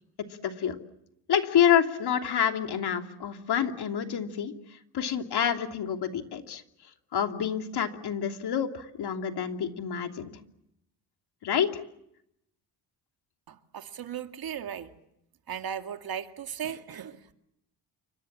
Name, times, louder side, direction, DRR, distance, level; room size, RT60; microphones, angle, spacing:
voice 1, 0.4-0.8 1.3-4.5 4.9-6.6 7.1-10.3 11.4-11.8, left 8 dB, 60° left, 3.0 m, -27 dB
voice 2, 13.5-14.9 15.5-17.3, right 8 dB, 55° right, 2.3 m, -37 dB
29.0 x 25.0 x 7.5 m
cardioid pair, 80°, 44 cm